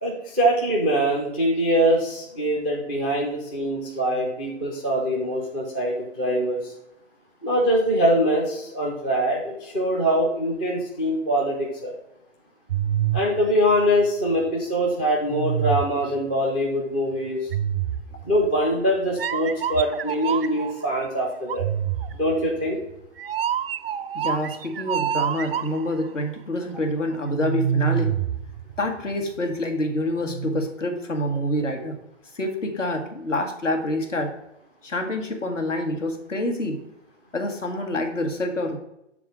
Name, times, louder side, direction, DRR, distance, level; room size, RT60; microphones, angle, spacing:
voice 1, 0.0-6.7 7.4-11.9 13.1-17.4 18.3-21.7 22.2-22.8, equal, 10° left, -2 dB, 0.4 m, -23 dB
sound 1, 12.7-14.5 15.3-16.2 17.5-18.5 19.2-20.8 21.5-26.0 27.3-29.1 30.3-30.7, right 9 dB, 50° right, 0.4 m, -27 dB
voice 2, 24.1-28.1 28.8-31.9 32.3-34.3 34.8-36.8 37.3-38.8, left 1 dB, 70° left, 4 dB, 1.6 m, -27 dB
7.5 x 3.7 x 5.2 m, 0.84 s
figure-of-eight pair, 120°, 38 cm